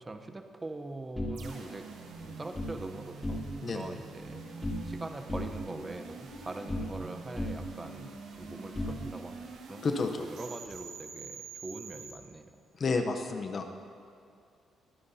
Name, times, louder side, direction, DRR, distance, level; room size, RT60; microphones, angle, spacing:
voice 1, 0.0-1.9 2.2-9.9 10.2-12.5, right 2 dB, 25° right, 7 dB, 0.8 m, -43 dB
sound 1, 1.1-2.8 3.1-3.8 4.0-5.0 5.3-7.1 7.4-9.5, left 1 dB, 15° left, 2.4 m, -38 dB
sound 2, 1.3-12.1, right 5 dB, 85° right, 1.4 m, -46 dB
voice 2, 9.8-10.2 12.8-13.7, left 4 dB, 45° left, 5 dB, 0.8 m, -30 dB
23.0 x 9.5 x 2.8 m, 2.3 s
cardioid pair, 90°, 0 cm